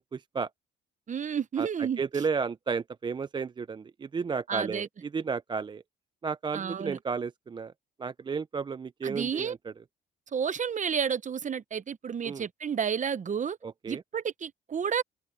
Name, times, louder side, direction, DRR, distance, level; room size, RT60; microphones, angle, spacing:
voice 1, 0.1-0.5 1.6-4.9 5.1-5.8 6.2-7.7 8.0-9.6 12.2-12.4 13.6-14.0, right 5 dB, 25° right, 0.3 m, -33 dB
voice 2, 1.1-2.2 4.5-4.9 6.5-7.0 9.0-9.6 10.3-13.6 13.9-15.0, right 7 dB, 40° right, 0.9 m, -31 dB
cardioid pair, 90°, 20 cm